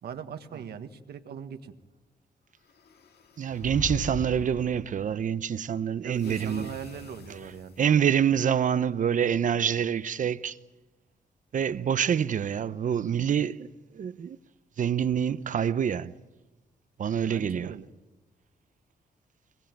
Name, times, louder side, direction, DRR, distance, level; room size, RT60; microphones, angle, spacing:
voice 1, 0.0-1.7 6.0-7.8 17.2-17.9, right 7 dB, 85° right, 1.5 m, -40 dB
sound 1, 2.6-4.3 6.2-8.1, left 5 dB, 85° left, 2.1 m, -50 dB
voice 2, 3.4-6.7 7.8-10.6 11.5-13.7 13.9-14.4 14.8-16.1 17.0-17.7, right 8 dB, 55° right, 0.7 m, -26 dB
sound 2, 3.5-5.1, left 3 dB, 50° left, 5.7 m, -36 dB
24.5 x 20.0 x 9.1 m
wide cardioid pair, 145°, 16 cm